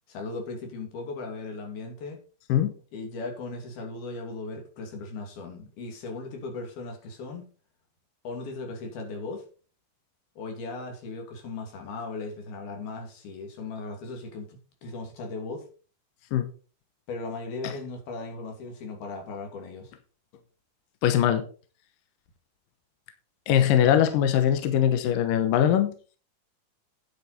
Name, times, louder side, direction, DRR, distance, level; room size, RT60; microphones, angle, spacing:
voice 1, 0.1-2.2 2.9-7.5 8.2-9.5 10.4-15.7 17.1-19.9, left 3 dB, 90° left, 3 dB, 4.5 m, -37 dB
voice 2, 21.0-21.4 23.5-25.9, left 10 dB, 75° left, 8 dB, 2.5 m, -21 dB
9.5 x 8.9 x 4.2 m, 0.37 s
omnidirectional pair, 4.2 m